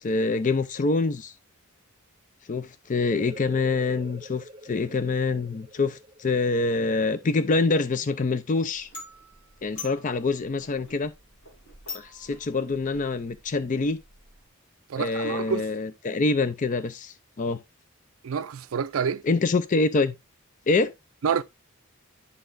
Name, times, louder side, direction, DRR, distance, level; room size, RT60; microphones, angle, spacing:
voice 1, 0.0-1.3 2.5-8.9 9.6-11.1 11.9-14.0 15.0-17.6 19.2-20.1 20.7-20.9, left 3 dB, 35° left, 0.4 m, -25 dB
sound 1, 3.1-8.4, equal, 20° right, 1.0 m, -46 dB
sound 2, 8.7-14.5, left 4 dB, 90° left, 2.9 m, -45 dB
voice 2, 14.9-15.7 18.2-19.2 21.2-21.4, right 6 dB, 75° right, 0.4 m, -27 dB
11.0 x 4.1 x 2.5 m
head